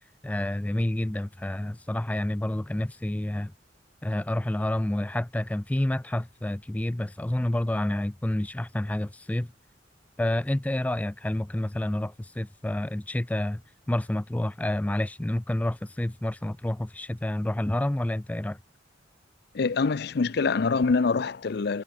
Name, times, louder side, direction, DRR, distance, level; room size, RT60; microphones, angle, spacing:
voice 1, 0.2-3.5 4.0-9.5 10.2-13.6 13.9-18.6, left 1 dB, 10° left, 0.3 m, -29 dB
voice 2, 19.5-21.8, left 4 dB, 60° left, 0.5 m, -25 dB
head